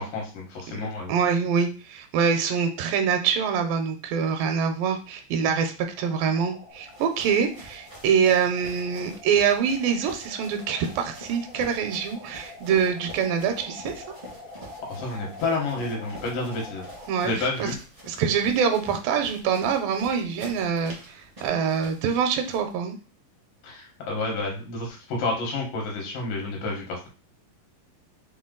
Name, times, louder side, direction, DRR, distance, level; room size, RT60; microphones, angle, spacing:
voice 1, 0.0-1.1 14.8-16.8 17.2-17.7 23.6-27.1, left 3 dB, 75° left, -1 dB, 3.0 m, -30 dB
voice 2, 1.1-14.0 17.1-17.8 18.1-23.0, right 7 dB, 85° right, 6 dB, 2.3 m, -25 dB
sound 1, 5.9-17.1, left 1 dB, 50° left, 0.7 m, -45 dB
sound 2, 6.7-22.7, equal, 30° right, 0.6 m, -47 dB
6.2 x 2.2 x 3.7 m, 0.34 s
omnidirectional pair, 4.0 m